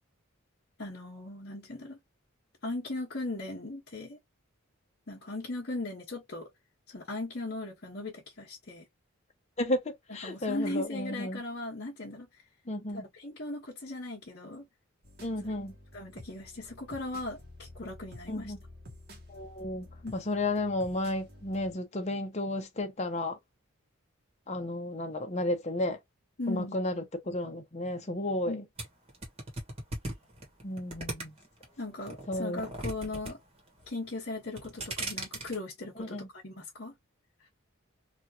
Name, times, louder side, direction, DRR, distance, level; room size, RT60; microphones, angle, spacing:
voice 1, 0.8-2.0 2.6-4.2 5.1-6.5 6.9-8.9 10.2-12.3 13.1-14.7 15.4-15.5 15.9-18.5 20.0-20.1 26.4-26.8 28.5-28.6 31.8-33.4 33.9-36.9, left 2 dB, 50° left, 1.1 m, -38 dB
voice 2, 9.6-11.4 12.7-13.1 15.2-15.7 18.3-18.6 19.3-19.9 20.1-23.4 24.5-26.0 26.5-28.6 30.6-31.4 32.3-32.6 36.0-36.3, left 1 dB, 30° left, 0.8 m, -33 dB
sound 1, 15.0-21.7, left 1 dB, 50° right, 1.0 m, -51 dB
sound 2, 28.8-31.6 32.1-33.3 33.6-34.1 34.5-35.6, right 1 dB, 30° right, 1.2 m, -37 dB
3.0 x 2.4 x 2.7 m
head